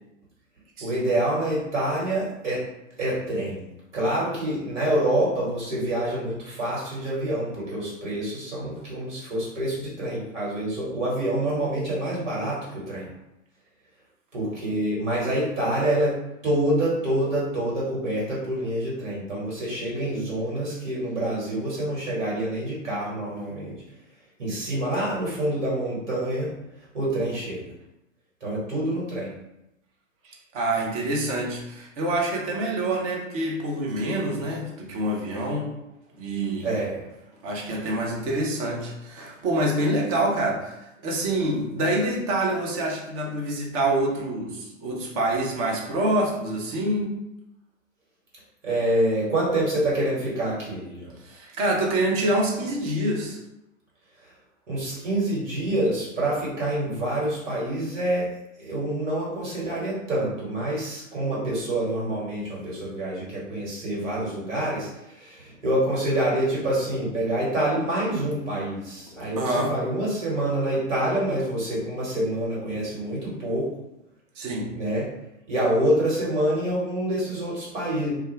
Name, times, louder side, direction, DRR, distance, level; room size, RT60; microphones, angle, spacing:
voice 1, 0.8-2.6 3.0-3.6 3.9-13.1 14.3-23.7 24.4-26.5 26.9-27.7 28.4-29.3 36.6-37.1 48.6-51.1 54.7-58.3 58.6-73.7 74.7-75.1 75.5-78.1, right 1 dB, 70° right, -6 dB, 1.4 m, -26 dB
voice 2, 30.5-35.7 36.2-36.8 37.4-40.8 41.0-47.1 51.2-53.4 69.3-69.7 74.4-74.7, right 1 dB, 30° right, -1 dB, 0.5 m, -26 dB
2.3 x 2.2 x 3.1 m, 0.87 s
figure-of-eight pair, 105°, 39 cm